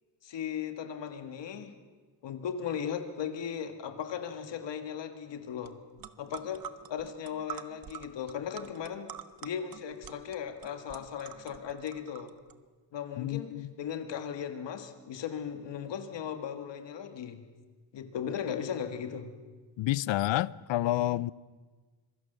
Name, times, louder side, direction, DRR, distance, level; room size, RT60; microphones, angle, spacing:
voice 1, 0.2-1.8 2.2-5.8 6.2-9.1 9.4-12.3 12.9-17.4 17.9-19.3, left 8 dB, 75° left, 1.8 m, -37 dB
sound 1, 5.7-5.8 6.0-12.5, right 9 dB, 50° right, 1.0 m, -46 dB
voice 2, 13.2-13.7 19.8-21.3, left 15 dB, 90° left, 0.6 m, -29 dB
25.5 x 23.5 x 6.8 m
wide cardioid pair, 175°, 44 cm